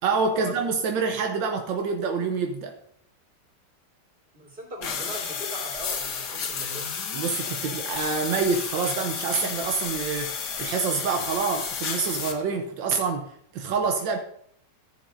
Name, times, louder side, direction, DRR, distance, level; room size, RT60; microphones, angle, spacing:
voice 1, 0.0-2.8 7.1-14.2, right 5 dB, 85° right, 4 dB, 1.5 m, -27 dB
voice 2, 4.3-7.0, right 1 dB, 30° right, -4 dB, 3.6 m, -38 dB
sound 1, 4.8-12.3, left 6 dB, 65° left, 1.5 m, -32 dB
14.5 x 7.2 x 2.6 m, 0.67 s
omnidirectional pair, 2.0 m